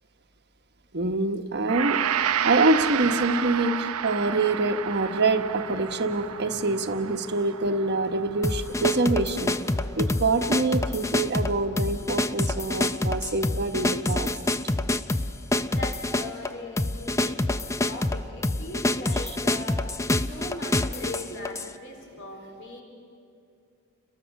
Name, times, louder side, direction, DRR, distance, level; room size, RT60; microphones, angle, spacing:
voice 1, 0.9-2.0 2.4-9.6 10.0-14.3, right 2 dB, 50° right, 7 dB, 1.2 m, -25 dB
Gong, 1.7-10.1 10.4-10.6, right 9 dB, 85° right, 0.7 m, -31 dB
sound 1, 8.4-21.7, left 2 dB, 15° left, 0.5 m, -27 dB
voice 2, 15.6-19.9 20.2-22.8, left 2 dB, 60° left, 1 dB, 4.2 m, -39 dB
30.0 x 22.0 x 6.5 m, 2.4 s
head